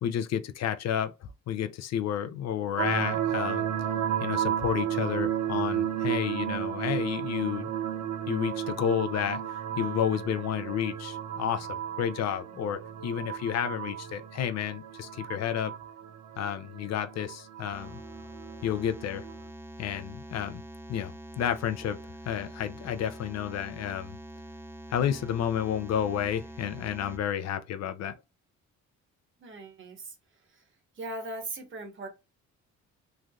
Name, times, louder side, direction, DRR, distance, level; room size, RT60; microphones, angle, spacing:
voice 1, 0.0-3.7 4.2-7.7 8.3-9.4 9.8-15.7 16.4-18.0 18.6-19.3 19.8-20.6 20.9-22.0 22.2-24.2 24.9-28.1, left 9 dB, 60° left, 0.4 m, -31 dB
sound 1, 2.8-19.3, right 10 dB, 70° right, 0.6 m, -33 dB
sound 2, 17.7-27.2, equal, 10° right, 0.4 m, -45 dB
voice 2, 29.4-30.1 30.5-30.6 31.0-32.1, right 2 dB, 40° right, 1.1 m, -39 dB
3.2 x 2.5 x 2.3 m
cardioid pair, 90°, 30 cm